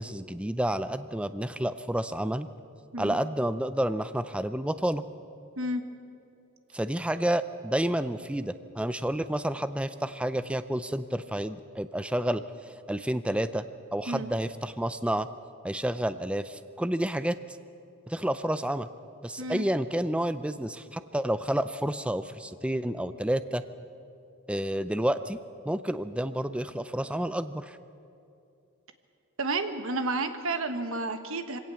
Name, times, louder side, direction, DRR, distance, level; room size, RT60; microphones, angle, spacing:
voice 1, 0.0-2.5 3.0-5.0 6.7-12.4 12.9-13.6 13.9-15.3 15.6-17.4 18.1-18.9 19.2-23.6 24.5-25.4 25.6-27.8, right 1 dB, 5° right, 12 dB, 0.4 m, -30 dB
voice 2, 29.4-31.6, right 2 dB, 70° right, 8 dB, 1.3 m, -31 dB
23.5 x 17.5 x 7.0 m, 2.7 s
head